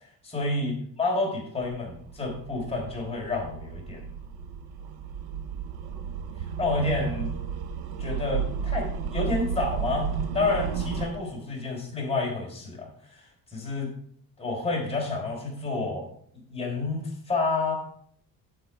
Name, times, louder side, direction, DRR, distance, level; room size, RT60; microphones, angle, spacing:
voice 1, 0.2-4.1 6.6-7.3 8.0-13.2 13.5-13.9 14.4-16.1 16.5-17.7, left 3 dB, 15° left, -2 dB, 4.5 m, -29 dB
sound 1, 1.6-11.1, right 7 dB, 85° right, 1.2 m, -33 dB
10.0 x 7.8 x 4.7 m, 0.62 s
cardioid pair, 115°, 37 cm